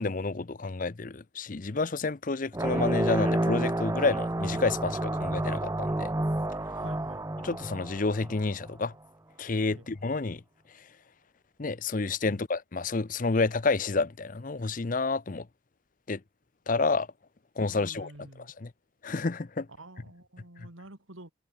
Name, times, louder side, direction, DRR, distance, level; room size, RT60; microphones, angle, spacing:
voice 1, 0.0-6.1 7.4-8.9 9.4-10.4 11.6-15.5 16.1-16.2 16.7-17.1 17.6-18.1 18.4-18.7 19.0-19.7 20.6-20.7, left 3 dB, 40° left, 0.6 m, -29 dB
sound 1, 2.5-8.7, right 1 dB, 15° right, 0.7 m, -30 dB
voice 2, 6.8-7.3 9.7-9.9 12.3-12.4 17.6-18.5 19.8-21.3, right 1 dB, 90° right, 3.4 m, -48 dB
head